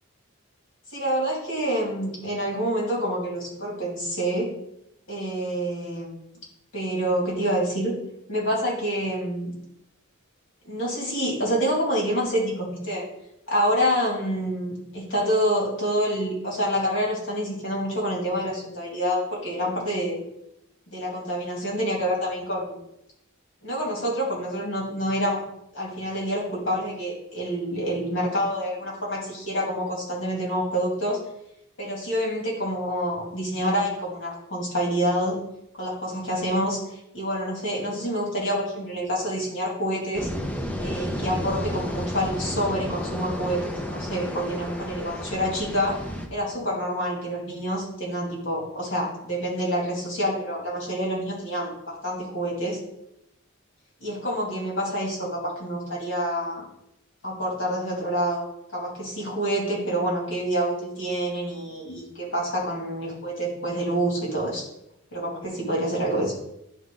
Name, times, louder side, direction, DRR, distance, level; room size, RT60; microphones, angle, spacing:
voice 1, 0.9-4.5 5.1-6.1 6.7-7.9 8.3-9.5 10.7-13.1 13.5-20.2 20.9-22.8 23.6-25.4 25.7-31.2 31.8-35.4 35.8-36.8 37.1-40.3 40.8-46.0 46.3-52.8 54.0-56.6 57.2-58.4 58.7-64.6 65.1-66.3, equal, 60° left, -3 dB, 2.5 m, -27 dB
sound 1, 40.1-46.3, equal, 5° left, 0.6 m, -32 dB
10.5 x 3.7 x 3.8 m, 0.81 s
head